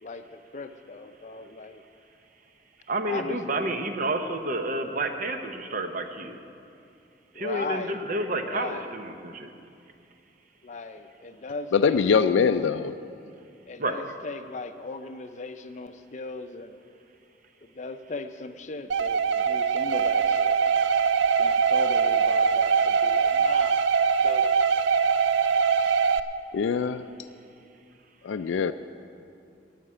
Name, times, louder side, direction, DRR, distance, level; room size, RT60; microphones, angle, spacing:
voice 1, 0.0-1.8 3.0-3.5 7.3-8.0 8.3-8.9 10.6-12.3 13.7-16.8 17.6-20.6 21.4-23.9 24.2-24.5, left 3 dB, 40° left, 9 dB, 0.5 m, -38 dB
voice 2, 2.9-6.4 7.4-9.5 13.8-14.0 21.3-21.4, right 2 dB, 45° right, 6 dB, 0.9 m, -30 dB
voice 3, 11.7-13.0 26.5-27.0 28.2-28.7, left 6 dB, 90° left, 9 dB, 0.4 m, -23 dB
sound 1, 18.9-26.2, right 6 dB, 80° right, 0.4 m, -22 dB
15.5 x 5.8 x 9.7 m, 2.5 s
head